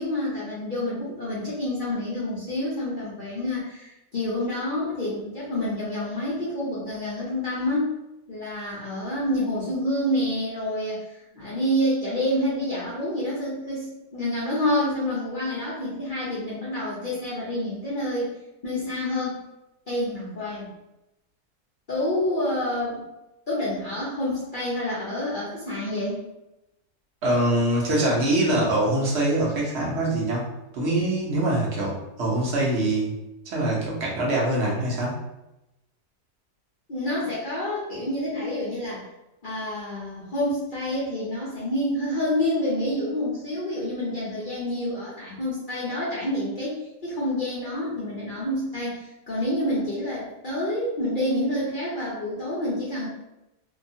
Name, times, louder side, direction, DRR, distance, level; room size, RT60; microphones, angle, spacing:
voice 1, 0.0-7.9 8.3-18.3 18.6-19.5 19.9-20.7 21.9-23.0 23.5-26.2 36.9-39.0 39.4-53.1, left 1 dB, 60° left, -8 dB, 0.5 m, -28 dB
voice 2, 27.2-30.5 30.7-33.1 33.5-35.2, right 1 dB, 50° right, -4 dB, 0.9 m, -24 dB
2.8 x 2.3 x 2.6 m, 0.93 s
omnidirectional pair, 1.7 m